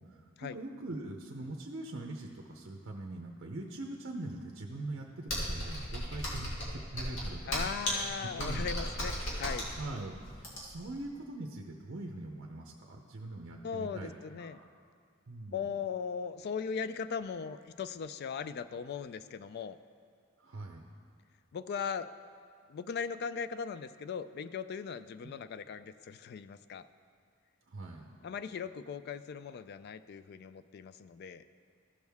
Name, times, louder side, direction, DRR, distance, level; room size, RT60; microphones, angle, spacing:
voice 1, 0.0-7.7 8.4-8.6 9.8-14.1 14.4-14.7 15.3-15.7 20.4-20.9 27.7-28.2, right 2 dB, 60° right, 1 dB, 0.6 m, -42 dB
Computer keyboard, 5.3-10.9, equal, 65° left, 2.0 m, -35 dB
voice 2, 7.5-9.7 13.6-14.6 15.5-19.8 21.5-22.1 22.7-26.9 28.2-31.4, left 6 dB, 50° left, 13 dB, 0.3 m, -38 dB
14.5 x 6.3 x 3.5 m, 2.1 s
head